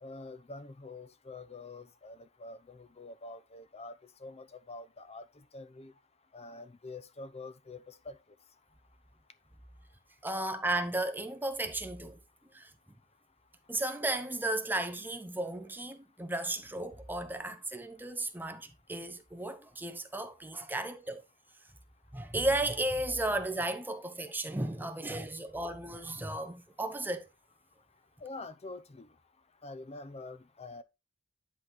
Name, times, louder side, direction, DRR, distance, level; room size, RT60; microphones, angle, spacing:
voice 1, 0.0-3.9 4.2-5.9 6.3-8.2 28.2-29.1 29.6-30.8, left 3 dB, 30° left, 0.7 m, -46 dB
voice 2, 10.2-12.2 12.5-12.7 13.7-21.2 22.1-27.3, right 1 dB, 10° right, 0.8 m, -34 dB
10.5 x 4.2 x 3.9 m
head